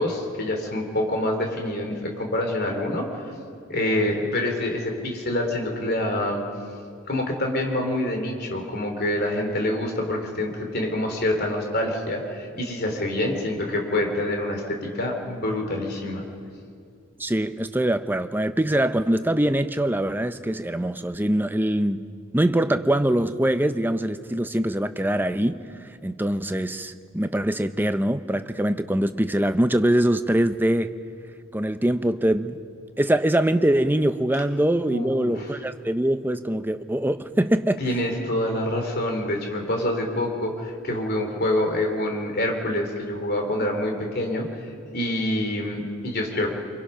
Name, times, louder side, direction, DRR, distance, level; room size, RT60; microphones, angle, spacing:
voice 1, 0.0-3.3 3.7-6.4 7.1-16.2 34.9-35.5 37.8-44.5 44.9-46.5, left 1 dB, 50° left, 3.4 m, -26 dB
voice 2, 17.2-22.1 22.3-30.9 31.5-32.6 33.0-37.8, right 1 dB, 10° right, 0.6 m, -23 dB
25.0 x 24.0 x 5.7 m
head